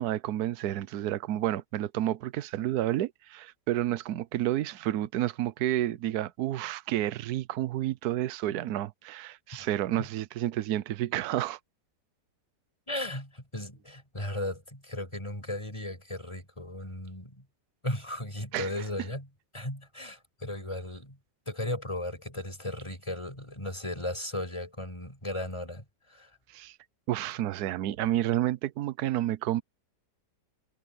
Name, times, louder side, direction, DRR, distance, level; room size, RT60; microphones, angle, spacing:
voice 1, 0.0-11.6 18.5-18.7 26.5-26.8 27.1-29.6, right 13 dB, 65° right, 1.2 m, -30 dB
voice 2, 12.9-17.4 17.8-19.3 19.5-21.2 21.5-26.4, left 1 dB, 15° left, 6.4 m, -36 dB
omnidirectional pair, 1.9 m